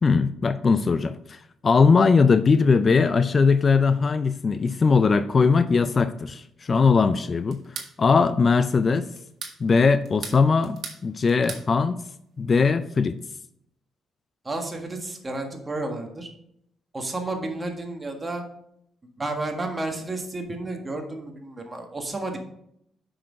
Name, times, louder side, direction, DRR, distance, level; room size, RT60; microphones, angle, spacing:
voice 1, 0.0-7.6 8.0-9.1 9.6-12.0 12.4-13.1, left 4 dB, 40° left, 13 dB, 0.4 m, -20 dB
sound 1, 7.5-7.9 9.2-9.6 10.0-11.0 11.3-11.7, right 5 dB, 60° right, 1.8 m, -37 dB
voice 2, 14.4-16.3 16.9-18.4 19.2-22.4, right 2 dB, 25° right, 3 dB, 1.7 m, -31 dB
6.4 x 6.2 x 5.2 m, 0.73 s
cardioid pair, 90°, 0 cm